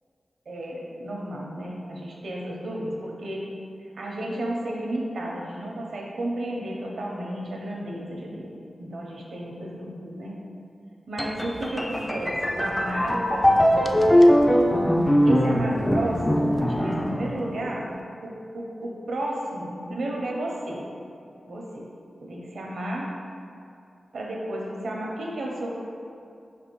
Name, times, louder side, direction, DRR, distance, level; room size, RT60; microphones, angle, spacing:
voice 1, 0.5-3.5 4.0-10.4 11.1-14.4 15.2-17.9 18.2-20.9 21.5-21.9 22.2-23.1 24.1-25.7, right 1 dB, 80° right, -2 dB, 0.7 m, -33 dB
sound 1, 11.2-17.9, equal, 15° left, 0.3 m, -21 dB
4.9 x 3.3 x 3.0 m, 2.4 s
cardioid pair, 50°, 0 cm